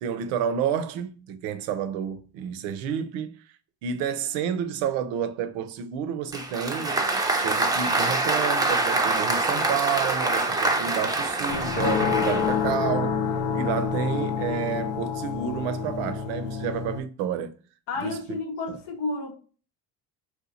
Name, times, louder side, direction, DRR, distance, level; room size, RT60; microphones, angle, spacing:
voice 1, 0.0-3.4 3.8-7.0 7.3-13.2 13.5-17.6 18.0-18.2 18.7-18.8, right 8 dB, 85° right, 0.6 m, -30 dB
Applause, 6.3-12.7, right 2 dB, 10° right, 0.4 m, -25 dB
sound 1, 11.5-17.0, left 6 dB, 65° left, 0.7 m, -27 dB
voice 2, 17.9-19.3, left 3 dB, 80° left, 1.0 m, -31 dB
2.8 x 2.2 x 3.8 m
supercardioid pair, 75°, 47 cm